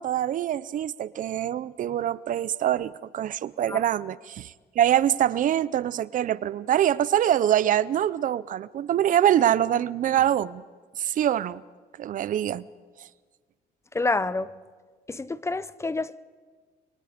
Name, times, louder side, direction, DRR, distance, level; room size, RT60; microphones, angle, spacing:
voice 1, 0.0-10.6 11.0-11.6 12.0-12.6, right 11 dB, 50° right, 0.6 m, -24 dB
voice 2, 13.9-14.5 15.1-16.2, left 3 dB, 15° left, 0.6 m, -28 dB
29.5 x 24.0 x 5.1 m
cardioid pair, 110°, 17 cm